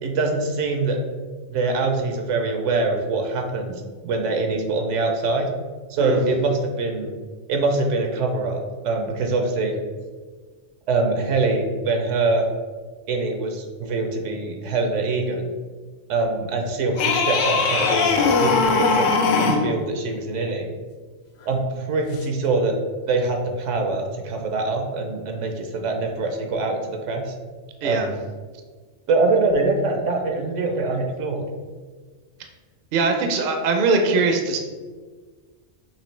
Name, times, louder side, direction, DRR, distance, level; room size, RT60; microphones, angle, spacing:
voice 1, 0.0-1.0 1.5-3.7 4.0-5.5 5.9-7.1 7.5-9.8 10.9-12.5 13.1-15.5 16.1-19.1 19.4-20.7 21.5-22.8 23.1-27.3 27.8-28.2 29.1-31.5, right 3 dB, 75° right, 3 dB, 1.0 m, -24 dB
sound 1, 17.0-19.7 22.2-22.3, left 4 dB, 85° left, 1.0 m, -20 dB
voice 2, 32.9-34.6, right 3 dB, 55° right, 4 dB, 0.6 m, -21 dB
6.0 x 2.7 x 3.2 m, 1.5 s
omnidirectional pair, 1.3 m